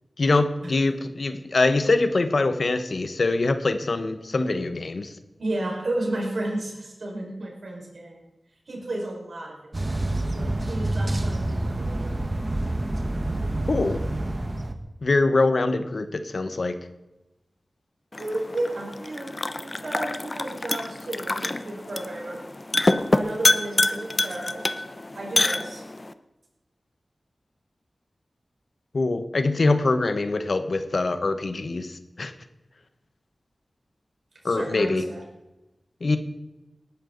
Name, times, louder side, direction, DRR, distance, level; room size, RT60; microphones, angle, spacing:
voice 1, 0.2-5.1 13.7-14.0 15.0-16.8 28.9-32.3 34.4-35.0 36.0-36.2, left 3 dB, 60° left, 9 dB, 1.1 m, -23 dB
voice 2, 5.4-8.2 8.7-12.4 18.2-22.4 23.1-24.7 25.1-25.8 34.4-35.2, right 1 dB, 70° right, -1 dB, 5.2 m, -33 dB
sound 1, 9.7-14.7, right 1 dB, 35° right, 1.5 m, -27 dB
sound 2, 18.1-26.1, left 2 dB, 35° left, 0.8 m, -26 dB
19.0 x 11.5 x 4.0 m, 1.0 s
wide cardioid pair, 70°, 0 cm